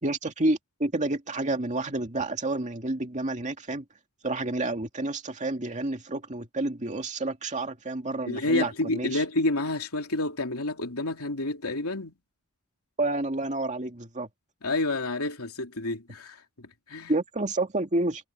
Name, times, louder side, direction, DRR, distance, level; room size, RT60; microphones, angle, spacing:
voice 1, 0.0-3.9 4.2-9.2 13.0-14.3 17.1-18.2, right 2 dB, 35° right, 2.3 m, -29 dB
voice 2, 8.2-12.1 14.6-17.1, left 2 dB, 75° left, 3.2 m, -29 dB
head